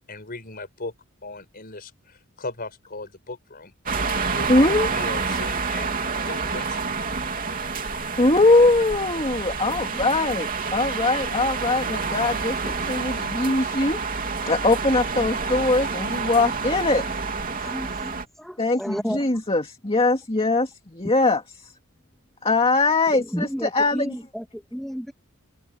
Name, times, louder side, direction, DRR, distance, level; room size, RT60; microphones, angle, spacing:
voice 1, 0.1-0.9 1.2-3.7 4.3-4.5 4.9-6.9, left 2 dB, 45° left, 5.0 m, -37 dB
sound 1, 3.9-18.2, right 4 dB, 40° right, 3.1 m, -28 dB
voice 2, 4.5-4.9 8.2-14.0 14.5-17.0 18.6-21.4 22.4-24.1, left 2 dB, 25° left, 2.2 m, -21 dB
voice 3, 17.6-19.2 23.1-25.1, equal, ahead, 2.3 m, -32 dB
open air
head